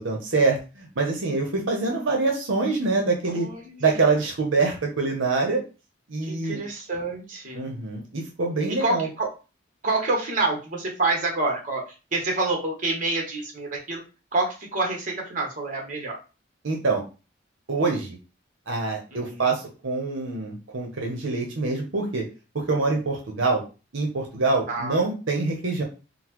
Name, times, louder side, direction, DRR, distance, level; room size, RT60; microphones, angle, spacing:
voice 1, 0.0-3.5 3.8-5.6 6.1-6.6 7.5-9.1 16.6-17.0 17.7-18.2 18.7-22.3 22.5-23.6 23.9-25.8, right 3 dB, 70° right, 1 dB, 0.7 m, -25 dB
voice 2, 3.3-4.0 6.2-7.6 8.7-9.3 9.8-11.8 12.1-14.0 14.3-16.2 19.1-19.5 24.7-25.0, right 2 dB, 40° right, 1 dB, 0.9 m, -27 dB
3.8 x 2.0 x 2.9 m, 0.31 s
head